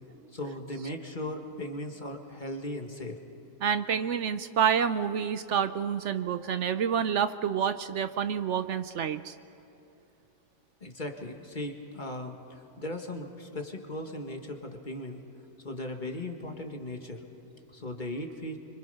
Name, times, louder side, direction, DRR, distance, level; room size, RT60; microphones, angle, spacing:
voice 1, 0.3-3.2 10.8-15.2 15.6-17.2 17.7-18.6, left 1 dB, 35° left, 3 dB, 1.9 m, -37 dB
voice 2, 3.6-9.3, right 8 dB, 65° right, 12 dB, 1.0 m, -28 dB
26.0 x 24.5 x 5.6 m, 3.0 s
omnidirectional pair, 1.3 m